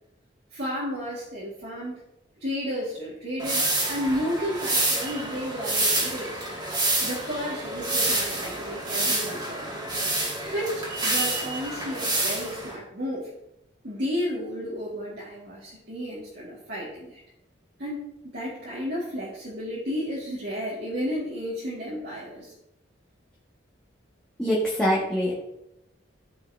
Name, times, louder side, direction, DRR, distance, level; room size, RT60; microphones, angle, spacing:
voice 1, 0.5-2.0 2.4-6.5 7.0-9.8 10.5-13.3 13.8-17.2 17.8-22.5, equal, 55° right, -7 dB, 1.9 m, -32 dB
sound 1, 3.4-12.7, right 2 dB, 20° right, 2.1 m, -28 dB
voice 2, 24.4-25.3, equal, 5° left, -7 dB, 1.7 m, -24 dB
13.5 x 5.6 x 2.7 m, 0.86 s
head